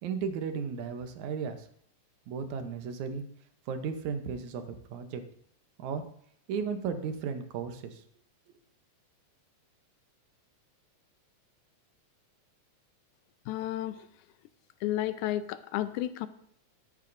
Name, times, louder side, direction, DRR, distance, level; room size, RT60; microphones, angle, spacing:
voice 1, 0.0-1.7 2.3-3.3 3.7-4.6 4.9-5.2 5.8-6.0 6.5-8.0, right 6 dB, 80° right, 8 dB, 2.3 m, -34 dB
voice 2, 13.5-14.0 14.8-16.3, left 13 dB, 80° left, 12 dB, 2.0 m, -32 dB
14.0 x 9.0 x 2.6 m, 0.68 s
omnidirectional pair, 3.4 m